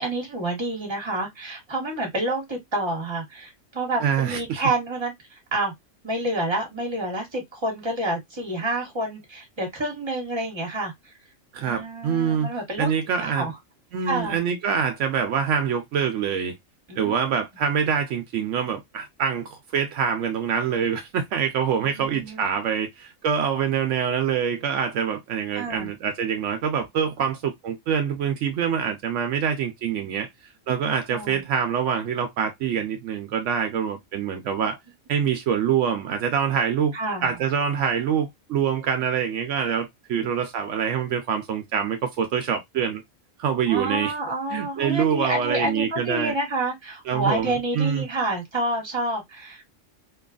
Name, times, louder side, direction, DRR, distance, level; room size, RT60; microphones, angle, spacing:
voice 1, 0.0-5.7 6.0-11.1 11.6-12.9 13.2-13.5 14.0-14.4 16.9-17.3 21.8-22.4 25.5-25.9 31.1-31.4 36.9-37.3 40.1-40.3 43.7-49.6, right 2 dB, 25° right, 1.2 m, -28 dB
voice 2, 4.0-4.6 11.5-12.5 12.8-13.5 13.9-16.6 17.0-30.3 30.7-34.8 35.1-36.9 37.2-43.0 43.4-44.1 44.5-46.3 47.1-48.1, right 7 dB, 75° right, 0.9 m, -25 dB
3.0 x 2.3 x 2.4 m
omnidirectional pair, 1.3 m